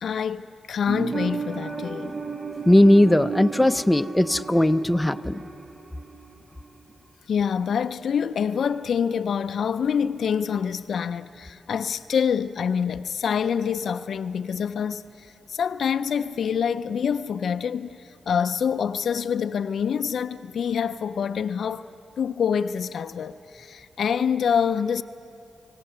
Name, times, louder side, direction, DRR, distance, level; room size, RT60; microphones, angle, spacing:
voice 1, 0.0-2.1 7.3-21.9 22.2-25.0, left 7 dB, 70° left, 0.4 m, -26 dB
sound 1, 0.9-6.4 6.6-6.7, right 5 dB, 45° right, 1.4 m, -34 dB
voice 2, 2.7-5.4, left 1 dB, 15° left, 0.6 m, -18 dB
28.5 x 17.0 x 6.8 m
supercardioid pair, 55°, 0 cm